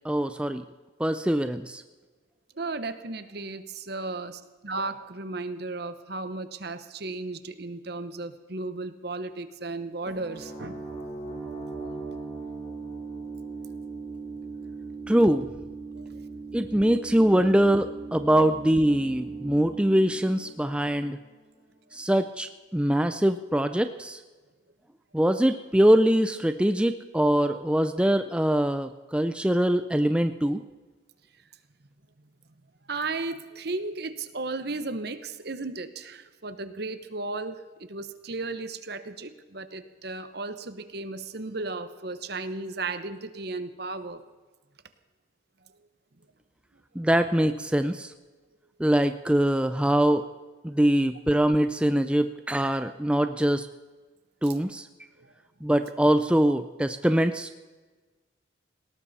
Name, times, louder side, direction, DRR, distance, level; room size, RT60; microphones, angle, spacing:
voice 1, 0.0-0.6 1.0-1.8 15.1-15.5 16.5-21.2 21.9-24.2 25.1-30.6 47.0-48.1 48.8-50.3 50.6-53.7 54.4-54.9 55.6-57.6, right 1 dB, 5° right, 9 dB, 0.4 m, -23 dB
voice 2, 2.6-10.8 11.7-11.8 15.9-16.2 32.9-37.6 37.9-44.2 55.2-55.3, right 3 dB, 55° right, 10 dB, 1.0 m, -35 dB
sound 1, 10.1-21.6, right 3 dB, 35° left, 5.6 m, -39 dB
19.5 x 18.0 x 4.2 m, 1.3 s
head